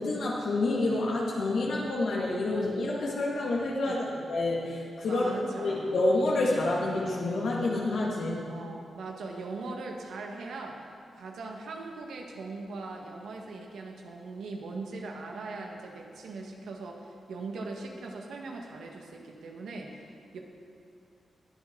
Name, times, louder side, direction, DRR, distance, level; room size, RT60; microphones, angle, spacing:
voice 1, 0.0-5.3 5.6-8.4, left 2 dB, 80° left, -4 dB, 2.0 m, -28 dB
voice 2, 3.9-4.2 5.1-5.9 8.5-10.8 11.1-20.4, right 3 dB, 85° right, 1 dB, 1.5 m, -40 dB
21.0 x 7.7 x 3.9 m, 2.5 s
cardioid pair, 85°, 0 cm